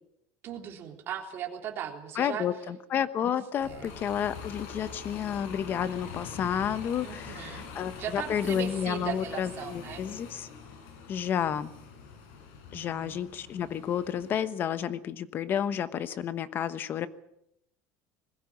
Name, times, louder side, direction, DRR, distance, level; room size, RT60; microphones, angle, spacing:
voice 1, 0.4-2.5 3.6-4.0 7.0-7.7 8.0-10.0 12.7-13.2, right 9 dB, 35° right, 3 dB, 3.5 m, -38 dB
voice 2, 2.1-10.5 11.1-11.7 12.7-17.1, left 9 dB, 30° left, 13 dB, 1.1 m, -31 dB
Bus, 3.6-14.4, left 5 dB, 70° left, 7.5 m, -44 dB
21.5 x 15.5 x 8.6 m, 0.78 s
cardioid pair, 165°, 7 cm